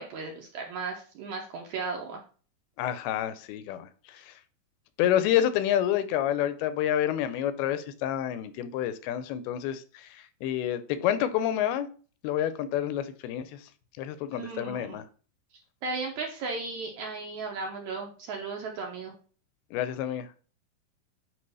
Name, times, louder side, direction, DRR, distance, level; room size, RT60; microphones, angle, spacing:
voice 1, 0.0-2.2 14.3-15.0 15.8-19.2, right 4 dB, 70° right, 1.8 m, -35 dB
voice 2, 2.8-3.9 5.0-10.1 10.4-11.9 12.2-13.5 14.0-15.0 19.7-20.4, left 11 dB, 90° left, 2.6 m, -28 dB
8.8 x 3.2 x 5.4 m
omnidirectional pair, 4.3 m